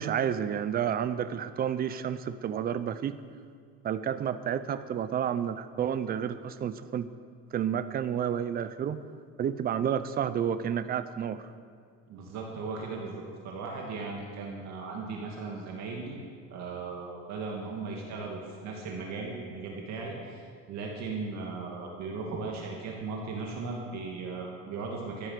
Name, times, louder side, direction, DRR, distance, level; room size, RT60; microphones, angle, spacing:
voice 1, 0.0-3.2 3.8-7.1 7.5-9.0 9.4-11.4, right 9 dB, 25° right, 13 dB, 0.5 m, -30 dB
voice 2, 12.1-16.2 16.5-20.4 20.7-25.3, right 4 dB, 50° right, -1 dB, 2.2 m, -37 dB
14.0 x 11.0 x 6.7 m, 2.2 s
cardioid pair, 160°, 36 cm